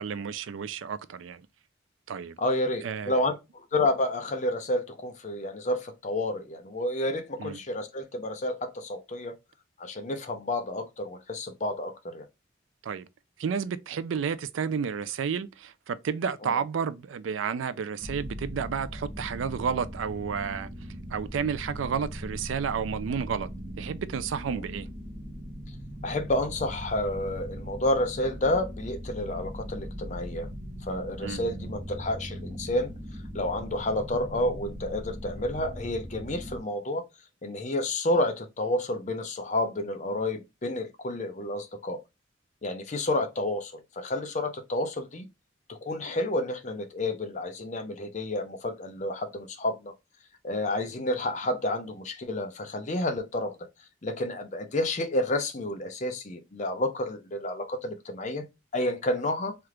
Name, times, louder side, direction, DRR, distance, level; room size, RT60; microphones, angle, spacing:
voice 1, 0.0-1.4 2.1-2.4 2.8-3.2 7.4-7.6 12.8-13.1 13.4-20.7 21.1-23.5 23.8-24.9 31.2-31.4, right 6 dB, 80° right, 0.4 m, -31 dB
voice 2, 2.4-9.3 9.8-12.3 16.4-16.6 24.5-24.6 26.0-30.5 30.8-32.9 33.3-37.0 37.4-42.0 42.6-45.3 45.7-49.9 50.4-53.5 54.0-58.4 58.7-59.6, left 1 dB, 35° left, 0.6 m, -30 dB
sound 1, 18.0-36.6, equal, 25° right, 0.6 m, -39 dB
3.3 x 2.4 x 2.9 m
head